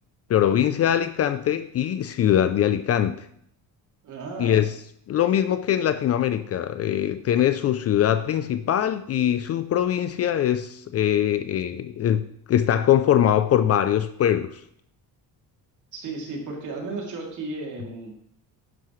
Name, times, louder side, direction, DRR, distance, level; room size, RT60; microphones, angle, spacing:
voice 1, 0.3-3.3 4.4-4.7 5.1-12.2 12.5-14.6, left 10 dB, 40° left, 12 dB, 0.4 m, -22 dB
voice 2, 4.0-4.7 15.9-18.1, right 3 dB, 50° right, 0 dB, 2.9 m, -34 dB
11.5 x 10.5 x 3.2 m, 0.67 s
cardioid pair, 165°, 38 cm